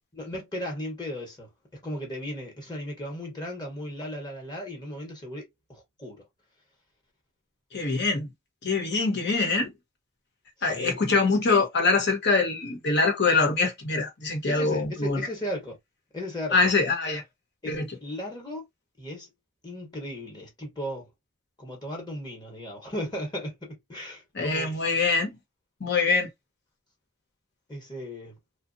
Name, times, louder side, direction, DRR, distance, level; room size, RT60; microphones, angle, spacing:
voice 1, 0.2-6.2 10.6-11.0 14.5-15.8 16.1-16.7 17.6-18.7 19.0-19.3 19.6-21.1 21.6-24.7 27.7-28.4, equal, 20° left, 1.0 m, -36 dB
voice 2, 7.7-8.3 8.6-9.7 10.6-15.3 16.5-17.2 17.7-17.9 24.3-25.3 25.8-26.3, left 3 dB, 55° left, 1.0 m, -24 dB
2.8 x 2.2 x 2.6 m
head